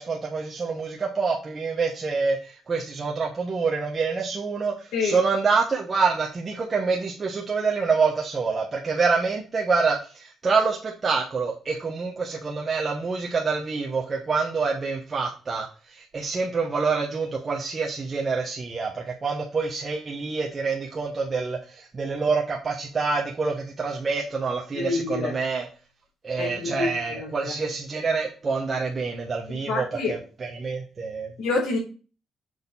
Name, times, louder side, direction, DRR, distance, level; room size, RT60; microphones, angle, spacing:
voice 1, 0.0-25.7 26.2-31.3, right 4 dB, 35° right, -1 dB, 1.3 m, -26 dB
voice 2, 24.7-25.3 26.4-27.5 29.7-30.1 31.4-31.8, left 3 dB, 70° left, -4 dB, 3.2 m, -27 dB
6.6 x 3.8 x 5.5 m, 0.35 s
cardioid pair, 90°, 0 cm